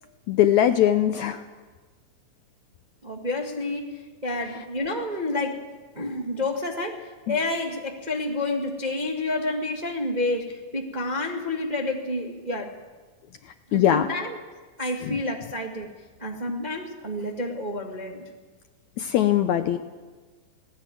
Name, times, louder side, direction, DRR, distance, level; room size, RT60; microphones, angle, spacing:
voice 1, 0.3-1.4 7.3-7.4 13.7-14.1 15.0-15.2 19.0-19.8, left 11 dB, 75° left, 8 dB, 1.8 m, -21 dB
voice 2, 3.0-5.6 5.9-12.7 13.7-14.4 14.8-15.9 16.2-18.3, left 2 dB, 25° right, 0 dB, 1.0 m, -29 dB
19.0 x 18.0 x 9.2 m, 1.4 s
omnidirectional pair, 4.0 m